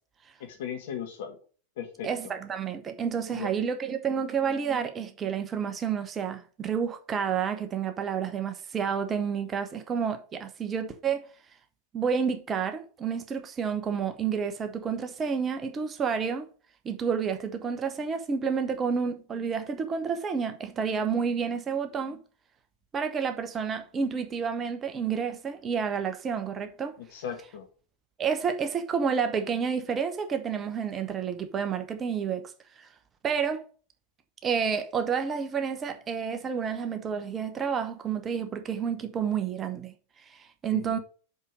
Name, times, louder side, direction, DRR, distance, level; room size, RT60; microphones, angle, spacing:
voice 1, 0.4-1.4 1.8-2.3 3.3-3.5 27.0-27.7 40.7-41.0, left 8 dB, 55° left, 1.7 m, -37 dB
voice 2, 2.0-11.2 11.9-16.5 16.8-22.2 22.9-26.9 28.2-32.5 32.8-32.9 33.2-33.6 34.4-39.9 40.3-41.0, right 6 dB, 25° right, 0.9 m, -30 dB
5.5 x 5.2 x 6.2 m
figure-of-eight pair, 90°, 0 cm